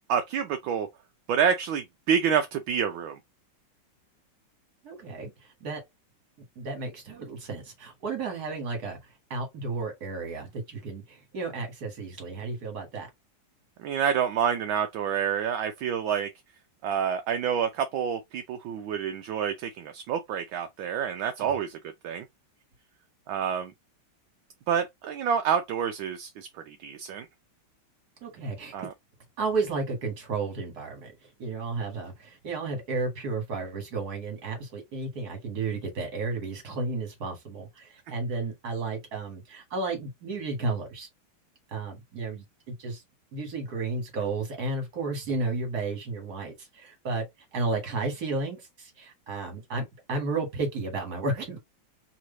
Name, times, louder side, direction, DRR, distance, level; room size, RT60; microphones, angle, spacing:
voice 1, 0.1-0.9 1.3-3.2 13.8-16.3 16.8-21.8 22.0-22.3 23.3-23.7 24.7-27.3 28.7-28.9, right 8 dB, 75° right, 1.4 m, -28 dB
voice 2, 4.8-5.3 5.6-5.8 6.6-9.0 9.3-13.1 21.4-21.6 28.2-28.9 29.4-31.1 31.4-41.1 41.7-43.0 43.3-47.3 47.5-51.6, right 3 dB, 50° right, 2.2 m, -33 dB
3.7 x 3.1 x 3.9 m
omnidirectional pair, 2.2 m